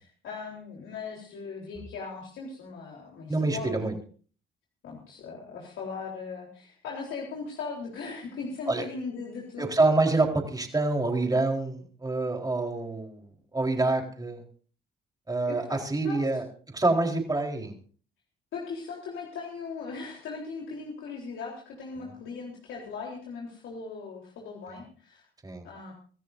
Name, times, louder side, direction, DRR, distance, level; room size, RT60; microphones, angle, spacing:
voice 1, 0.0-3.8 4.8-9.7 15.5-16.2 18.5-25.3 25.6-25.9, left 4 dB, 80° left, -2 dB, 3.8 m, -39 dB
voice 2, 3.3-4.0 8.7-8.9 9.6-14.4 15.3-17.8 22.0-22.1 25.4-25.7, right 2 dB, 20° right, 2 dB, 4.1 m, -27 dB
26.0 x 14.0 x 2.7 m, 0.42 s
cardioid pair, 90°, 20 cm